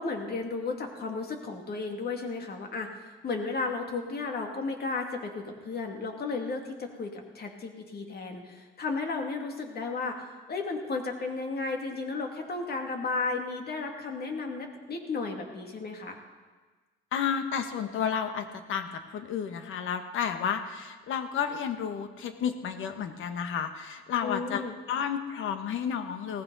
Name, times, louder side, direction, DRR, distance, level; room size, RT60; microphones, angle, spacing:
voice 1, 0.0-16.2 24.2-24.8, left 3 dB, 50° left, 3 dB, 2.4 m, -34 dB
voice 2, 17.1-26.4, left 7 dB, 80° left, 8 dB, 1.3 m, -32 dB
17.5 x 15.0 x 4.1 m, 1.3 s
cardioid pair, 90°, 20 cm